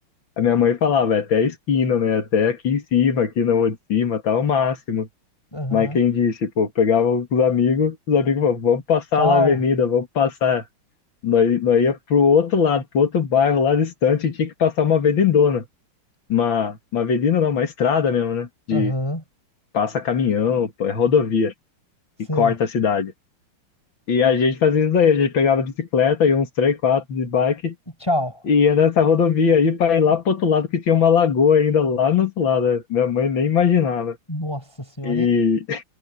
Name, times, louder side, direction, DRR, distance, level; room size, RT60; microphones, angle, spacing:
voice 1, 0.4-5.1 5.7-10.6 11.2-15.6 16.3-18.9 19.7-21.5 22.4-23.1 24.1-27.7 28.5-34.2 35.0-35.8, left 6 dB, 65° left, 2.9 m, -19 dB
voice 2, 5.5-6.0 9.1-9.6 18.7-19.2 22.2-22.5 28.0-28.4 34.3-35.3, left 1 dB, 10° left, 5.8 m, -25 dB
omnidirectional pair, 2.3 m